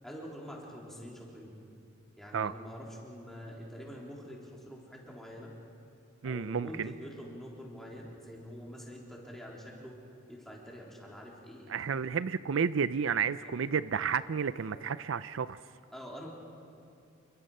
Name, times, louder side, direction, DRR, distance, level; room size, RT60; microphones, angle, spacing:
voice 1, 0.0-1.5 2.2-5.5 6.2-9.9 10.3-12.1 13.4-13.5 14.7-14.8 15.9-16.3, equal, ahead, -3 dB, 3.6 m, -46 dB
voice 2, 6.2-6.9 11.7-15.6, right 6 dB, 70° right, 15 dB, 0.5 m, -31 dB
28.5 x 23.0 x 5.5 m, 2.6 s
head